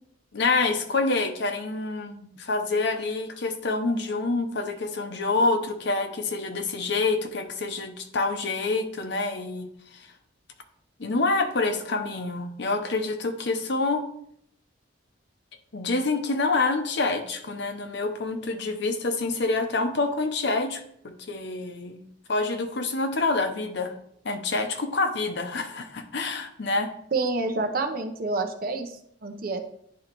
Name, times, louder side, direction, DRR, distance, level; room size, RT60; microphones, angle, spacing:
voice 1, 0.3-10.1 11.0-14.0 15.7-22.0 22.3-23.9 24.2-26.9, left 3 dB, 65° left, 6 dB, 0.8 m, -27 dB
voice 2, 27.1-29.7, right 3 dB, 50° right, 6 dB, 0.7 m, -28 dB
10.5 x 3.9 x 3.0 m, 0.70 s
head